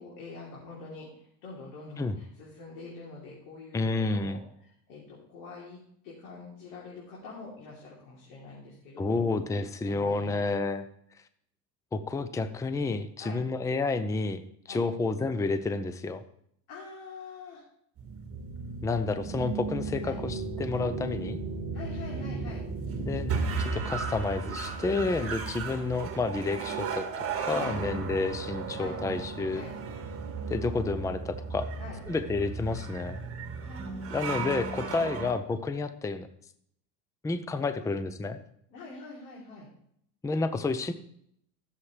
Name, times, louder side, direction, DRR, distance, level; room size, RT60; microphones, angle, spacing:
voice 1, 0.0-10.6 13.2-13.4 14.7-14.8 16.7-17.6 20.0-20.2 21.7-22.6 25.1-25.3 27.5-27.8 28.8-29.0 29.5-29.7 31.8-32.0 33.6-34.2 34.9-35.1 37.6-37.9 38.7-39.7, left 3 dB, 85° left, -5 dB, 3.5 m, -45 dB
voice 2, 3.7-4.4 9.0-10.9 11.9-14.4 14.7-16.2 18.8-21.4 23.0-27.1 27.4-29.6 30.5-31.7 32.1-33.2 34.1-36.3 37.2-38.4 40.2-40.9, left 3 dB, 10° left, 11 dB, 0.5 m, -30 dB
sound 1, 18.0-35.3, right 4 dB, 35° right, 1.9 m, -35 dB
15.5 x 7.3 x 3.3 m, 0.70 s
cardioid pair, 125°, 42 cm